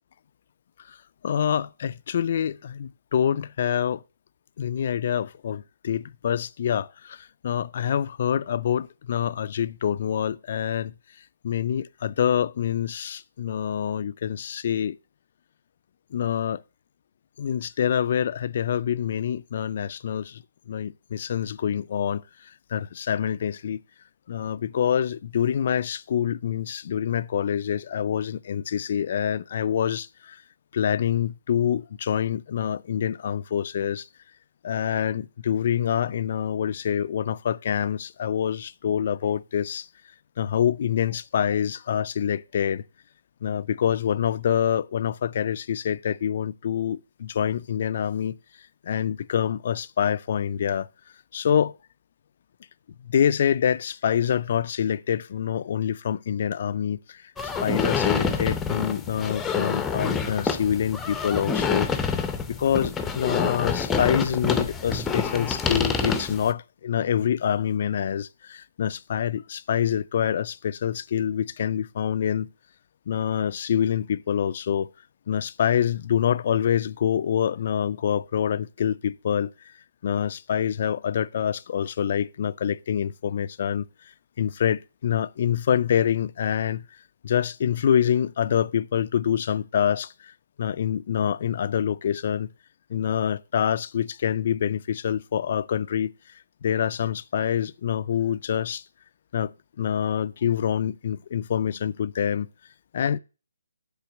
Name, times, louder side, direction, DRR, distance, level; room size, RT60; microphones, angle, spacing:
voice 1, 1.2-4.0 4.6-10.9 11.4-15.0 16.1-16.6 17.4-22.2 22.7-23.8 24.3-30.4 30.7-34.1 34.6-39.9 40.4-42.8 43.4-48.4 48.8-50.9 51.3-51.7 53.0-57.3 57.6-61.9 62.5-72.5 73.1-74.9 75.3-79.5 80.0-83.9 84.4-86.8 87.2-90.3 90.6-92.5 92.9-96.1 96.6-98.8 99.3-99.5 99.8-102.5 102.9-103.2, left 9 dB, 50° left, 0.3 m, -26 dB
sound 1, 57.4-66.5, left 5 dB, 10° left, 0.6 m, -27 dB
7.1 x 3.7 x 6.0 m
hypercardioid pair, 145°, 0 cm